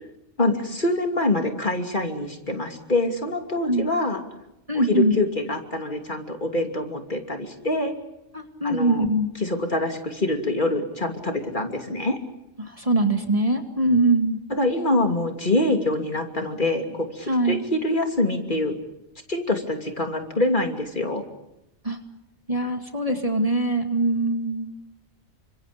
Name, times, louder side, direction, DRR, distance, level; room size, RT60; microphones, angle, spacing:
voice 1, 0.4-4.2 4.7-7.9 8.6-9.0 9.4-12.2 14.5-18.8 19.3-21.2, left 2 dB, 40° left, 4 dB, 3.0 m, -25 dB
voice 2, 4.7-5.1 8.3-9.3 12.6-14.4 17.3-17.6 21.8-22.0 22.5-24.7, right 2 dB, 30° right, 4 dB, 2.3 m, -22 dB
30.0 x 26.0 x 5.2 m, 0.89 s
omnidirectional pair, 1.3 m